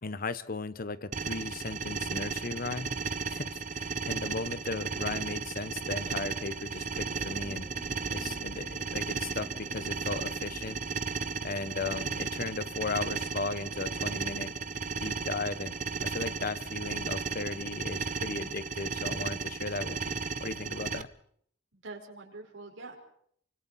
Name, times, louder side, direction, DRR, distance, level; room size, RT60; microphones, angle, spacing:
voice 1, 0.0-2.9 3.3-7.7 8.1-10.8 11.4-14.5 15.0-15.7 16.0-21.1, left 3 dB, 45° left, 15 dB, 0.9 m, -36 dB
sound 1, 1.1-21.0, right 5 dB, 40° right, 0.8 m, -35 dB
sound 2, 6.9-17.2, equal, 20° left, 3.6 m, -51 dB
voice 2, 21.7-23.0, right 3 dB, 70° right, 0 dB, 4.9 m, -45 dB
28.5 x 25.5 x 4.2 m, 0.64 s
head